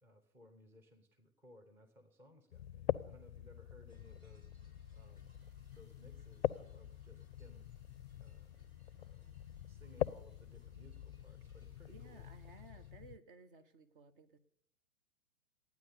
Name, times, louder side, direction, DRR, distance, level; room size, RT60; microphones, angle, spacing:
voice 1, 0.0-5.3 5.7-7.7 8.2-8.5 9.0-9.3 9.6-12.3, left 1 dB, 5° right, 4 dB, 0.7 m, -62 dB
sound 1, 2.5-13.2, left 11 dB, 50° left, 0.4 m, -44 dB
sound 2, 3.9-12.9, right 1 dB, 80° right, 1.9 m, -73 dB
sound 3, 4.3-12.7, left 2 dB, 10° left, 1.4 m, -71 dB
voice 2, 11.9-14.4, right 4 dB, 40° right, 8 dB, 0.8 m, -58 dB
12.5 x 9.4 x 6.8 m, 0.69 s
figure-of-eight pair, 115°, 42 cm